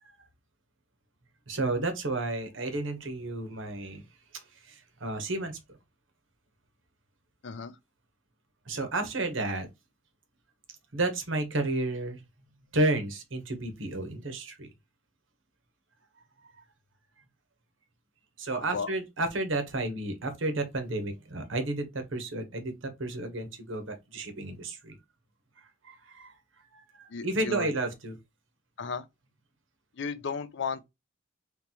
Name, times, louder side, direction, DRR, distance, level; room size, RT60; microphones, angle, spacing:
voice 1, 1.5-4.0 4.7-5.6 8.7-9.7 10.9-12.2 12.7-14.7 18.4-25.0 25.8-26.3 26.7-28.2, right 2 dB, 70° right, 1.1 m, -31 dB
voice 2, 27.1-27.7 28.8-29.0 30.0-30.8, left 5 dB, 60° left, 0.5 m, -34 dB
3.9 x 3.4 x 2.9 m
head